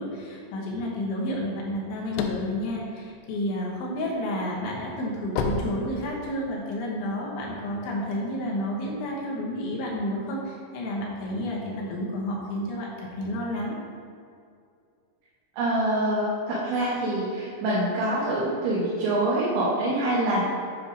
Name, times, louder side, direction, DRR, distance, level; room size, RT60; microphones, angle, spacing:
voice 1, 0.0-13.7, left 1 dB, 75° left, -3 dB, 2.8 m, -31 dB
sound 1, 1.6-3.8 4.3-6.5, left 4 dB, 90° left, 2.7 m, -31 dB
voice 2, 15.6-20.4, right 1 dB, 80° right, -7 dB, 3.1 m, -25 dB
9.3 x 3.4 x 5.2 m, 2.3 s
omnidirectional pair, 4.6 m